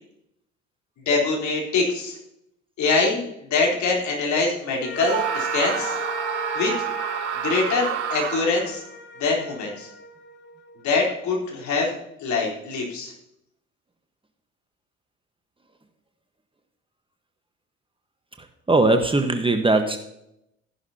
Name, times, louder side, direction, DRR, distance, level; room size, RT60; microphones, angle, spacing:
voice 1, 1.1-2.2 2.8-6.0 6.5-6.8 7.4-8.8 9.2-9.9 10.8-13.1, left 4 dB, 55° left, -1 dB, 3.8 m, -24 dB
sound 1, 4.8-11.2, left 4 dB, 30° left, 1.4 m, -37 dB
Screaming, 4.9-8.7, right 11 dB, 80° right, 0.7 m, -28 dB
voice 2, 18.7-20.0, right 2 dB, 15° right, 6 dB, 1.3 m, -19 dB
14.5 x 11.5 x 2.8 m, 0.79 s
figure-of-eight pair, 55°, 34 cm